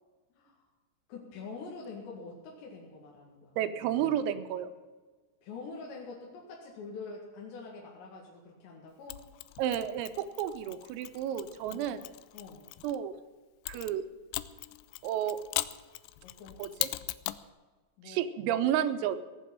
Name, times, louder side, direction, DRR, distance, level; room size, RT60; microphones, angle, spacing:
voice 1, 0.3-0.6 1.1-3.6 5.4-9.2 11.7-12.7 16.2-16.6 18.0-18.2, left 4 dB, 65° left, -2 dB, 3.9 m, -45 dB
voice 2, 3.6-4.7 9.6-12.0 12.8-13.1 13.7-14.0 15.0-15.4 16.6-16.9 18.1-19.2, right 10 dB, 85° right, 10 dB, 3.6 m, -31 dB
Mechanisms, 9.1-13.0 13.7-17.5, left 18 dB, 85° left, 2.6 m, -39 dB
18.0 x 7.8 x 8.9 m, 1.3 s
omnidirectional pair, 5.9 m